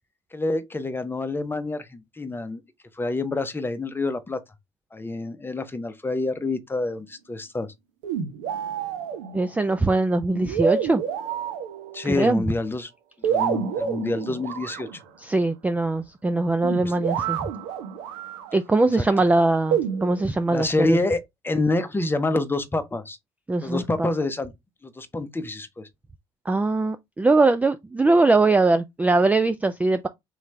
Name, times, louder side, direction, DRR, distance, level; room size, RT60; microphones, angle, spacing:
voice 1, 0.3-2.6 3.0-4.4 4.9-7.7 11.9-12.9 13.2-15.0 16.8-16.9 19.0-19.1 20.5-23.2 23.6-24.5 24.8-25.9, left 2 dB, 15° left, 0.8 m, -27 dB
sound 1, 8.0-9.6 10.3-12.2 13.2-15.0 16.6-18.5 19.7-20.2, right 8 dB, 75° right, 0.9 m, -28 dB
voice 2, 9.3-11.0 12.0-12.4 15.2-17.4 18.5-21.0 23.5-24.1 26.5-30.1, right 2 dB, 10° right, 0.3 m, -21 dB
3.7 x 3.1 x 3.3 m
hypercardioid pair, 65°, 14 cm